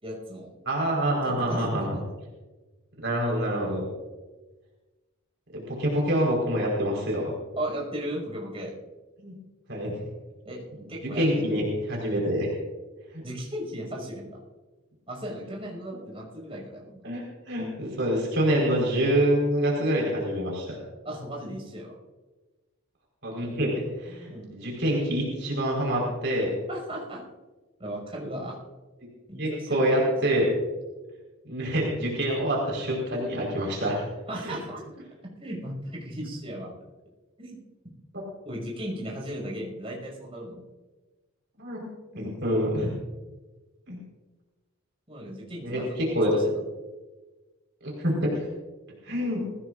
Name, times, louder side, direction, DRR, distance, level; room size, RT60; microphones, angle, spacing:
voice 1, 0.0-0.5 1.2-2.0 7.6-8.7 10.4-10.6 10.9-11.7 13.2-14.4 15.1-17.0 21.0-22.0 24.3-24.5 26.7-27.2 27.8-28.6 29.3-30.4 34.3-34.8 35.4-36.7 37.4-37.6 38.4-40.7 45.1-46.6, equal, 25° right, -3 dB, 6.2 m, -36 dB
voice 2, 0.6-2.0 3.0-3.8 5.7-7.3 9.2-9.3 9.7-9.9 10.7-10.8 11.2-11.6 11.9-12.5 13.1-13.2 17.0-20.8 23.2-26.5 29.4-30.5 31.4-34.0 34.4-34.6 38.1-38.2 41.6-41.9 42.1-42.9 43.9-44.0 45.6-46.3 47.8-48.5 49.0-49.5, equal, 55° right, -2 dB, 4.8 m, -26 dB
23.0 x 17.0 x 2.6 m, 1.2 s
head